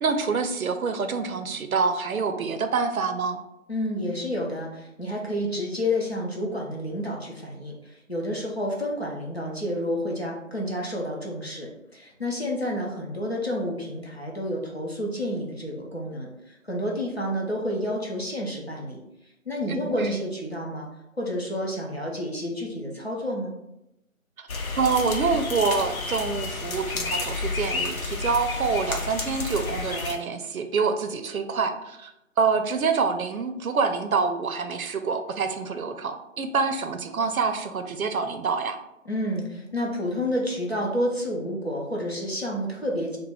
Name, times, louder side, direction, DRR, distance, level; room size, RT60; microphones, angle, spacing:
voice 1, 0.0-3.4 19.7-20.2 24.4-24.5 24.7-32.1 32.4-38.8, right 5 dB, 85° right, 7 dB, 0.5 m, -26 dB
voice 2, 3.7-19.0 19.5-20.9 21.1-23.5 39.1-43.2, equal, 50° left, -2 dB, 0.6 m, -30 dB
sound 1, 24.5-30.1, left 3 dB, 90° left, 0.7 m, -30 dB
2.3 x 2.1 x 3.3 m, 0.86 s
figure-of-eight pair, 180°, 41 cm